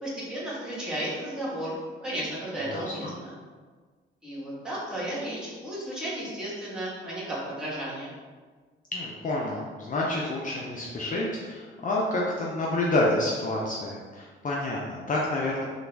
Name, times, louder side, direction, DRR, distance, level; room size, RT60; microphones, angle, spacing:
voice 1, 0.0-3.3 4.2-8.2, right 1 dB, 5° right, -8 dB, 1.5 m, -34 dB
voice 2, 8.9-15.6, left 2 dB, 40° left, -3 dB, 0.5 m, -28 dB
3.5 x 2.3 x 3.4 m, 1.5 s
cardioid pair, 90°, 20 cm